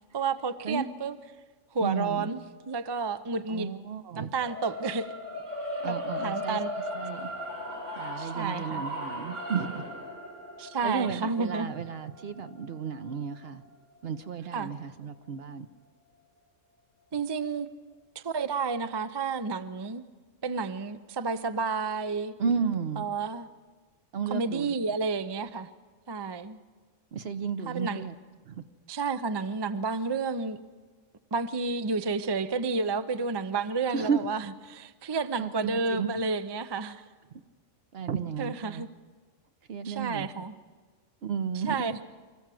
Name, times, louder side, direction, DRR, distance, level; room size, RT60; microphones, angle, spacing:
voice 1, 0.1-1.2 1.7-2.4 2.7-3.7 4.2-5.1 5.9-6.7 8.2-8.8 10.6-11.7 14.5-14.7 17.1-17.7 18.2-20.0 20.4-22.4 23.0-23.5 24.3-25.7 26.1-26.6 27.7-28.0 28.9-30.6 31.3-37.0 38.4-38.9 39.8-40.5 41.7-42.0, right 4 dB, 35° right, 11 dB, 0.4 m, -31 dB
voice 2, 1.8-2.3 3.5-4.3 5.8-6.6 6.9-7.3 7.9-9.9 10.8-13.6 14.0-15.7 22.4-23.1 24.1-24.7 27.1-28.1 28.5-28.6 33.9-34.2 35.4-36.1 37.9-38.8 39.7-40.3 41.2-41.8, right 6 dB, 55° right, 10 dB, 1.0 m, -33 dB
sound 1, 4.4-14.6, left 1 dB, 75° right, 5.1 m, -37 dB
25.0 x 14.5 x 7.6 m, 1.4 s
omnidirectional pair, 1.3 m